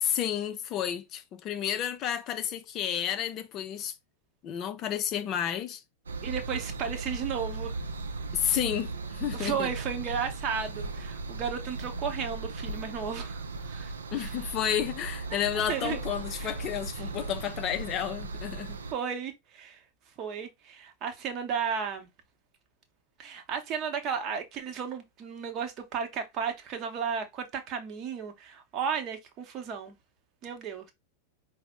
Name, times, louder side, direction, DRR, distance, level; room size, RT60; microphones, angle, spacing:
voice 1, 0.0-3.9 4.4-5.8 8.3-9.7 14.1-18.8, left 10 dB, 35° left, 0.4 m, -31 dB
sound 1, 6.1-18.9, right 3 dB, 70° right, 0.5 m, -37 dB
voice 2, 6.2-7.8 9.3-14.5 15.7-16.0 16.3-16.5 17.0-17.1 18.9-19.8 20.2-22.1 23.2-30.0 30.4-30.9, right 7 dB, 35° right, 0.8 m, -34 dB
4.9 x 2.0 x 3.5 m
figure-of-eight pair, 90°, 0 cm